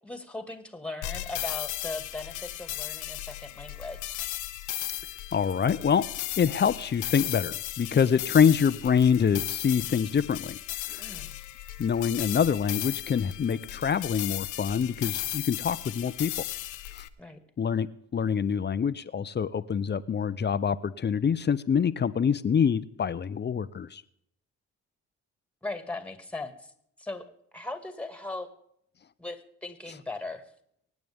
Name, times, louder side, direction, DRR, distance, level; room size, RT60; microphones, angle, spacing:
voice 1, 0.0-4.2 11.0-11.4 17.2-17.4 25.6-26.7 27.0-27.3 27.5-28.5 29.2-30.4, left 2 dB, 5° left, 8 dB, 2.1 m, -38 dB
sound 1, 1.0-17.1, left 15 dB, 85° left, 0.9 m, -36 dB
voice 2, 5.3-6.0 6.4-10.6 10.9-11.2 11.8-16.3 17.0-17.1 17.6-17.9 18.1-24.0, left 7 dB, 35° left, 14 dB, 0.7 m, -25 dB
24.0 x 9.4 x 3.6 m, 0.72 s
cardioid pair, 90°, 30 cm